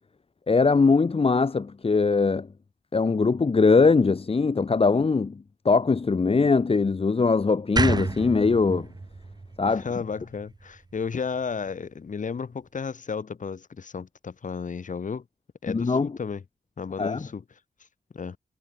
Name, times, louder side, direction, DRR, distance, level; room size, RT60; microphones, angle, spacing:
voice 1, 0.5-2.5 2.9-8.9 9.6-9.9 15.7-16.1 17.0-17.3, left 4 dB, 40° left, 1.4 m, -21 dB
sound 1, 7.8-10.9, right 3 dB, 30° right, 1.6 m, -30 dB
voice 2, 9.7-15.2 15.6-16.4 16.8-17.4 18.1-18.4, left 5 dB, 65° left, 4.2 m, -33 dB
cardioid pair, 65°, 14 cm